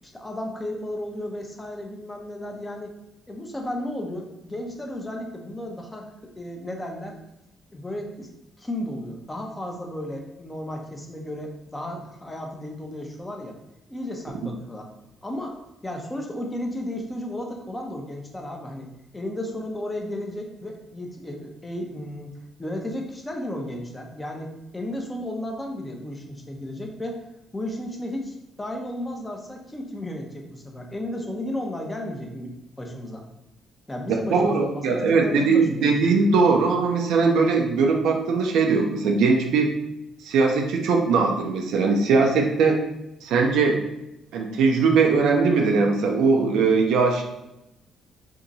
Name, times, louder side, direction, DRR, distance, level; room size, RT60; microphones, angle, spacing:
voice 1, 0.0-2.9 3.3-7.2 7.7-8.3 8.6-13.6 13.9-14.9 15.2-15.6 15.8-18.9 19.1-22.3 22.6-27.2 27.5-32.5 32.8-33.2 33.9-35.9, left 1 dB, 20° left, 1 dB, 0.8 m, -34 dB
voice 2, 34.3-39.7 40.2-42.8 43.2-43.8 44.3-47.2, right 4 dB, 80° right, 2 dB, 0.5 m, -20 dB
2.8 x 2.5 x 4.0 m, 0.90 s
supercardioid pair, 65°, 0 cm